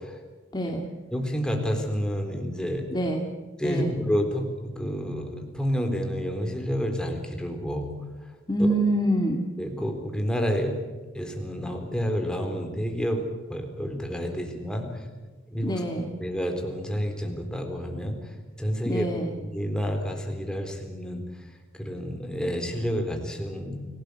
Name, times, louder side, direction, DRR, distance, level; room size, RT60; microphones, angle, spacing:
voice 1, 1.1-2.9 3.6-7.9 9.6-10.8 11.2-14.9 15.5-15.8 16.2-18.2 18.6-19.1 19.4-21.2 21.8-23.9, equal, 5° left, 3 dB, 3.9 m, -29 dB
voice 2, 2.9-3.2 3.6-3.9 8.5-9.4 15.6-16.1 18.8-19.3, right 1 dB, 20° left, 1 dB, 2.2 m, -25 dB
29.0 x 18.0 x 8.1 m, 1.2 s
head